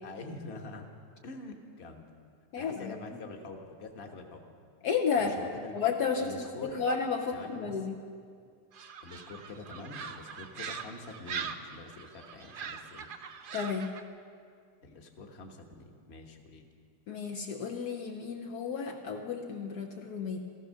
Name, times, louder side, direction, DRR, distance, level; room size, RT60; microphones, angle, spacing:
voice 1, 0.0-0.8 1.2-2.0 2.6-4.4 5.2-5.7 6.2-6.8 7.3-7.8 9.0-13.1 14.8-16.7, left 3 dB, 40° left, 3 dB, 1.4 m, -45 dB
voice 2, 2.5-2.9 4.8-5.4 5.7-8.0 13.5-13.9 17.1-20.4, left 6 dB, 65° left, 2 dB, 1.3 m, -32 dB
sound 1, 8.7-14.0, right 6 dB, 70° right, 0.4 m, -42 dB
15.5 x 14.0 x 6.4 m, 2.2 s
omnidirectional pair, 1.9 m